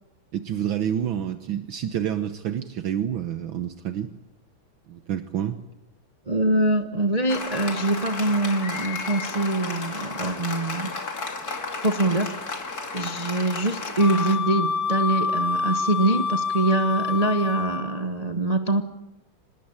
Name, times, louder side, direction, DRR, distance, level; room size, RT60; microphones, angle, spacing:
voice 1, 0.3-4.1 4.9-5.6, right 9 dB, 70° right, 8 dB, 1.8 m, -28 dB
voice 2, 6.3-10.9 11.8-12.6 12.9-18.8, right 2 dB, 25° right, 6 dB, 0.9 m, -24 dB
Applause, 7.3-14.4, left 4 dB, 45° left, 2.8 m, -33 dB
Wind instrument woodwind instrument, 14.0-18.0, left 4 dB, 65° left, 2.6 m, -27 dB
26.0 x 19.5 x 9.0 m, 0.97 s
omnidirectional pair, 2.3 m